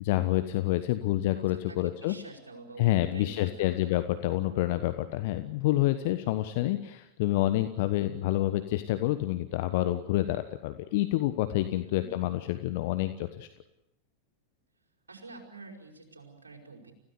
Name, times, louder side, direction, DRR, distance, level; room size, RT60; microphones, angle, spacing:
voice 1, 0.0-2.2 2.8-13.5, left 15 dB, 50° left, 10 dB, 1.2 m, -28 dB
voice 2, 1.3-3.8 11.8-12.2 15.1-16.9, right 3 dB, 75° right, 3 dB, 5.2 m, -48 dB
29.5 x 16.5 x 8.2 m, 0.87 s
figure-of-eight pair, 90°, 0 cm